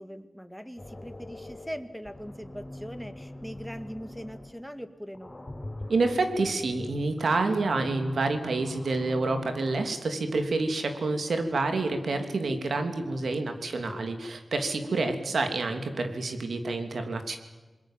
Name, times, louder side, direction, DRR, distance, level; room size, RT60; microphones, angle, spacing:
voice 1, 0.0-5.3, equal, ahead, 9 dB, 2.1 m, -41 dB
sound 1, 0.8-4.7 5.1-9.9, left 1 dB, 30° left, 6.2 m, -43 dB
voice 2, 5.9-17.4, right 3 dB, 85° right, 6 dB, 3.1 m, -28 dB
28.5 x 21.0 x 7.6 m, 1.3 s
wide cardioid pair, 75°, 0 cm